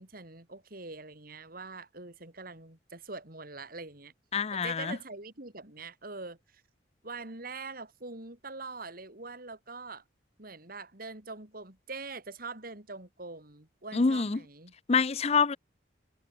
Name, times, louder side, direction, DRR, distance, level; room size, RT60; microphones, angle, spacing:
voice 1, 0.0-4.1 4.5-6.4 7.0-10.0 10.4-14.7, right 3 dB, 50° right, 3.7 m, -43 dB
voice 2, 4.3-5.0 13.9-14.4 14.9-15.6, left 5 dB, 35° left, 0.5 m, -26 dB
head